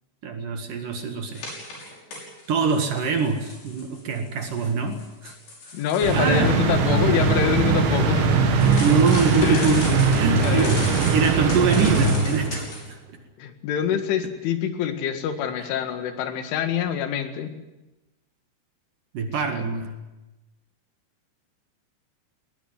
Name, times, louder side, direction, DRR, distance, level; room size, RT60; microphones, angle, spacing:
voice 1, 0.2-1.5 2.5-5.3 6.1-6.5 8.8-13.0 15.6-15.7 19.1-19.9, right 5 dB, 55° right, 6 dB, 2.9 m, -24 dB
sound 1, 1.3-2.5 2.8-6.2 8.6-12.9, left 2 dB, 65° left, 8.5 m, -36 dB
voice 2, 5.7-8.3 9.4-9.8 10.4-10.8 13.4-17.5 19.5-19.7, left 8 dB, 90° left, 8 dB, 4.5 m, -25 dB
sound 2, 6.0-12.7, right 4 dB, 70° right, 4.6 m, -21 dB
20.5 x 20.0 x 9.6 m, 1.0 s
omnidirectional pair, 5.4 m